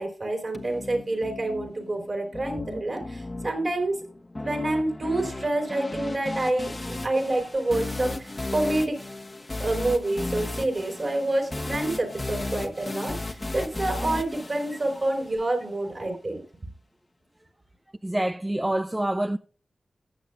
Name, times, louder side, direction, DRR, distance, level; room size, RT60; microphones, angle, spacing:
voice 1, 0.0-4.0 4.4-9.0 9.6-16.4, right 2 dB, 45° right, 4.4 m, -28 dB
sound 1, 0.5-15.5, left 2 dB, 30° left, 1.2 m, -35 dB
voice 2, 18.0-19.4, right 1 dB, 15° right, 0.4 m, -26 dB
19.0 x 7.5 x 2.4 m
wide cardioid pair, 70°, 0 cm